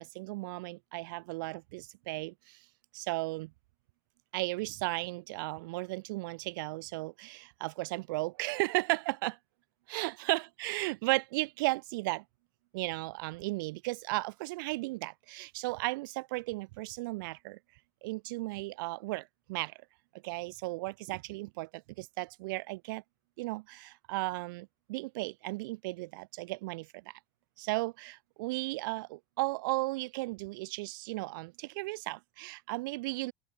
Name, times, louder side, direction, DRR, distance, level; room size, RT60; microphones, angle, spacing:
voice 1, 0.0-2.7 2.9-3.5 4.3-9.4 9.9-12.2 12.7-17.6 18.0-19.8 20.2-23.0 23.4-27.2 27.6-33.3, right 23 dB, 85° right, 7.4 m, -35 dB
cardioid pair, 135°, 11 cm